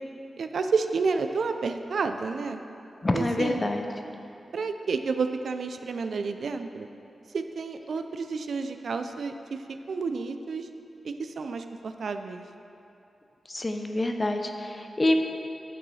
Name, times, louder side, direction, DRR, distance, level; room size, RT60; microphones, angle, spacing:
voice 1, 0.4-2.6 3.1-3.6 4.5-6.9 7.3-10.7 11.0-12.4, right 4 dB, 70° right, 7 dB, 0.3 m, -30 dB
voice 2, 3.0-3.9 13.5-15.2, left 1 dB, 25° left, 4 dB, 0.5 m, -26 dB
9.0 x 6.0 x 3.2 m, 2.8 s
wide cardioid pair, 135°, 0 cm